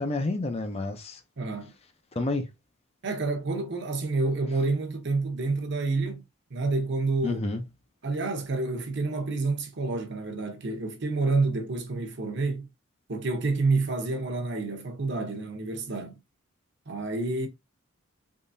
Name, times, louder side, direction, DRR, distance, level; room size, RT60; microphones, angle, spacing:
voice 1, 0.0-1.2 2.2-2.5 7.2-7.7, left 2 dB, 30° left, 0.5 m, -29 dB
voice 2, 1.4-1.7 3.0-6.2 6.5-7.4 8.0-12.7 13.1-16.2 16.9-17.5, right 3 dB, 55° right, 0.9 m, -28 dB
3.7 x 3.2 x 2.6 m
head